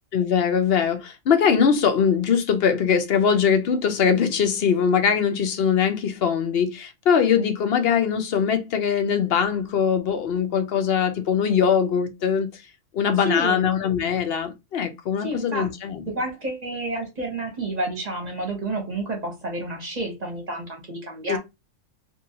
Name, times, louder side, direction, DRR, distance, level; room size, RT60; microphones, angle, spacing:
voice 1, 0.1-12.6 12.9-16.0 21.3-21.4, left 7 dB, 60° left, 0.8 m, -22 dB
voice 2, 13.2-13.7 15.2-15.7 16.1-21.4, right 1 dB, 35° right, 1.0 m, -29 dB
2.8 x 2.6 x 2.7 m
omnidirectional pair, 1.3 m